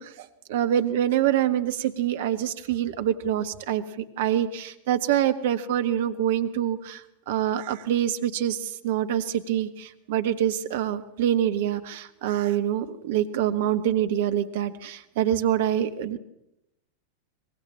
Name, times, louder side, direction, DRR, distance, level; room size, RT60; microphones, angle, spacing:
voice 1, 0.0-3.8 4.2-16.2, right 10 dB, 55° right, 10 dB, 1.5 m, -25 dB
23.5 x 20.0 x 7.3 m, 0.86 s
figure-of-eight pair, 90°, 0 cm